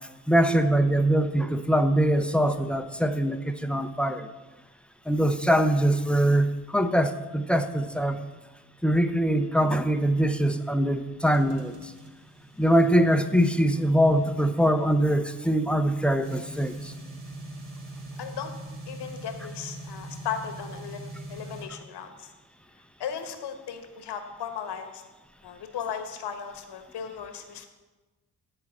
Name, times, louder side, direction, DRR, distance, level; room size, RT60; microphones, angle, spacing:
voice 1, 0.3-4.3 5.1-8.2 8.8-11.7 12.6-16.9, right 1 dB, ahead, 9 dB, 0.6 m, -23 dB
sound 1, 11.3-21.7, right 2 dB, 60° right, 1.5 m, -43 dB
voice 2, 18.2-18.5 18.9-22.3 23.0-25.0 25.4-27.7, left 8 dB, 60° left, 7 dB, 1.3 m, -36 dB
10.5 x 4.8 x 7.2 m, 1.2 s
hypercardioid pair, 40°, 46 cm